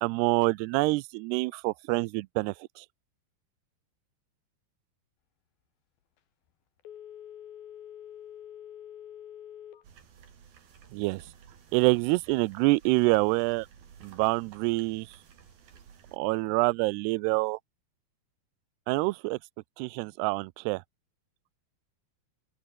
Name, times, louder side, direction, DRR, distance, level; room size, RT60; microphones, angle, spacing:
voice 1, 0.0-2.9 10.9-11.2 11.7-13.7 14.0-15.1 16.1-17.6 18.9-19.4 19.8-20.8, right 23 dB, 85° right, 2.7 m, -26 dB
Telephone, 6.8-9.9 10.3-10.4, left 10 dB, 65° left, 3.8 m, -46 dB
sound 1, 9.8-16.2, right 7 dB, 60° right, 5.0 m, -54 dB
open air
omnidirectional pair, 4.7 m